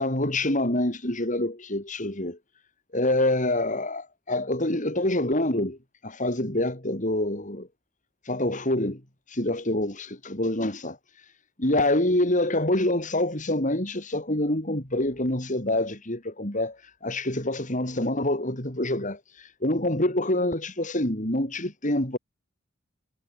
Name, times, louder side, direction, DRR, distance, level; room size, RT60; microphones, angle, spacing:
voice 1, 0.0-2.4 2.9-5.8 6.0-7.7 8.2-9.0 9.3-11.0 11.6-22.2, left 1 dB, 40° left, 5.6 m, -26 dB
head